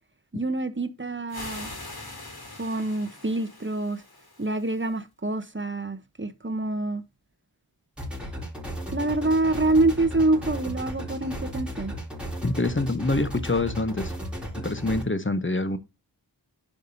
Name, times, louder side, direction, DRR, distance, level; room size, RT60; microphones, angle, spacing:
voice 1, 0.3-1.7 2.6-4.0 4.4-7.0 8.9-11.9, right 2 dB, 30° right, 1.1 m, -26 dB
sound 1, 1.3-5.0, left 2 dB, 60° left, 3.3 m, -42 dB
sound 2, 8.0-15.0, equal, ahead, 4.2 m, -35 dB
voice 2, 12.4-14.1 14.6-15.8, left 2 dB, 30° left, 1.1 m, -26 dB
11.0 x 5.1 x 2.8 m
wide cardioid pair, 45°, 42 cm